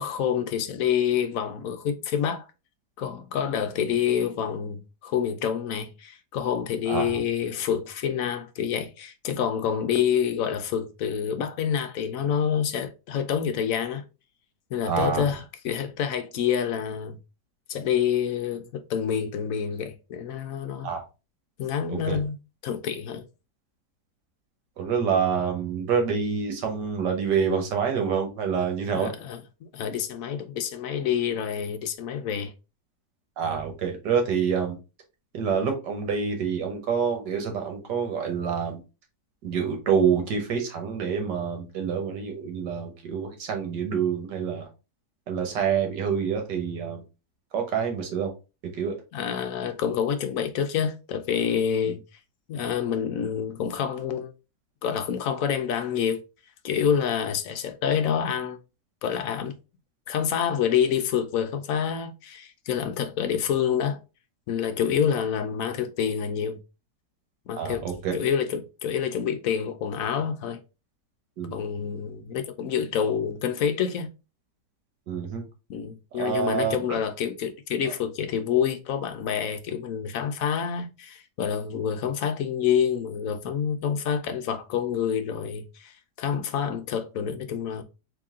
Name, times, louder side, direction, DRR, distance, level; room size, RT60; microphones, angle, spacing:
voice 1, 0.0-2.5 3.0-14.0 14.7-17.2 17.7-20.9 21.6-22.4 22.6-23.3 28.9-32.5 49.1-52.0 52.5-54.3 54.8-56.2 56.6-58.6 59.0-59.5 60.1-64.0 64.5-66.6 67.5-70.6 71.5-74.1 75.7-87.8, left 8 dB, 70° left, 0.9 m, -27 dB
voice 2, 6.9-7.2 14.8-15.3 20.8-21.0 21.9-22.2 24.8-29.1 33.4-34.8 35.3-38.8 39.4-44.7 45.3-47.0 47.5-48.3 48.7-49.0 51.9-52.0 67.6-68.2 71.4-71.6 75.1-75.4 76.1-77.0 77.8-77.9, right 6 dB, 80° right, 1.7 m, -27 dB
3.9 x 3.0 x 3.6 m
omnidirectional pair, 1.8 m